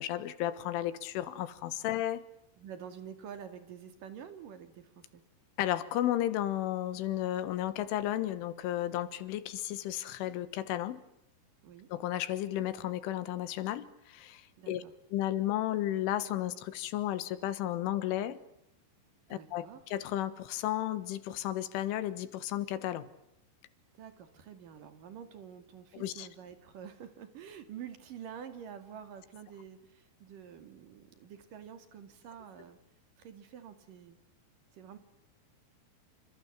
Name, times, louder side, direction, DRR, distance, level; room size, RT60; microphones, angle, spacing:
voice 1, 0.0-2.3 5.6-11.0 11.9-14.8 15.1-18.4 19.3-23.1 25.9-26.3, left 13 dB, 80° left, 3.9 m, -33 dB
voice 2, 2.6-5.2 11.6-11.9 14.6-14.9 19.3-19.8 24.0-32.8 33.2-34.2 34.7-35.0, right 8 dB, 50° right, 3.5 m, -48 dB
29.5 x 26.5 x 7.4 m
omnidirectional pair, 5.5 m